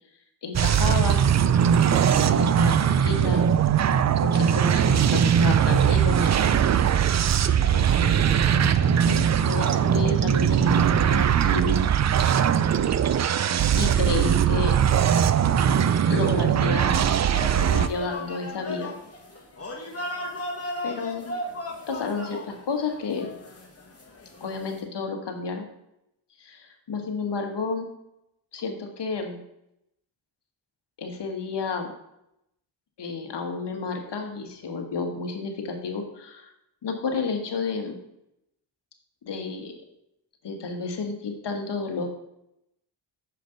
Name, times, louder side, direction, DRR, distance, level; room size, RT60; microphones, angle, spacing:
voice 1, 0.4-1.2 1.9-3.5 4.2-6.3 7.4-11.8 13.7-14.8 16.1-17.1 17.5-18.9 20.8-21.3 21.9-23.3 24.4-25.7 26.4-27.9 28.5-29.4 31.0-31.9 33.0-36.5 36.8-38.0 39.2-39.7 40.4-42.1, left 4 dB, 55° left, 4 dB, 1.5 m, -31 dB
sound 1, 0.5-17.9, right 8 dB, 35° right, 0.4 m, -20 dB
sound 2, 17.3-24.8, left 2 dB, 30° left, 1.8 m, -36 dB
6.9 x 5.2 x 3.9 m, 0.82 s
cardioid pair, 55°, 49 cm